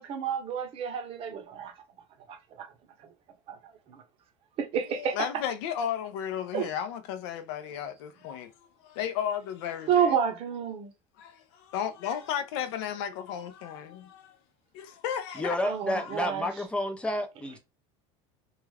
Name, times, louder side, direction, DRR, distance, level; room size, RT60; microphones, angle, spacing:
voice 1, 0.0-1.7 2.3-2.7 3.5-3.6 4.6-5.2 6.5-6.7 9.9-10.9 15.6-16.5, right 7 dB, 45° right, 0.7 m, -29 dB
voice 2, 4.9-8.5 8.8-10.1 11.2-14.4 14.7-15.6 16.0-16.2, left 9 dB, 75° left, 0.5 m, -34 dB
voice 3, 15.4-17.6, left 1 dB, 10° left, 0.5 m, -30 dB
2.4 x 2.2 x 3.1 m
supercardioid pair, 130°, 14 cm